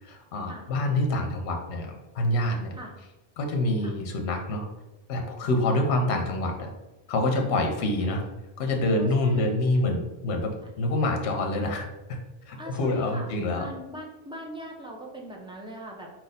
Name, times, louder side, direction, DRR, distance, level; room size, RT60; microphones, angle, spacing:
voice 1, 0.0-2.7 3.4-4.7 5.1-6.7 7.1-8.2 8.6-12.2 12.5-13.7, left 1 dB, 75° left, 3 dB, 0.9 m, -26 dB
voice 2, 9.0-9.9 10.6-10.7 12.6-16.1, right 1 dB, 5° right, -1 dB, 0.4 m, -41 dB
4.2 x 2.6 x 4.1 m, 1.0 s
omnidirectional pair, 1.2 m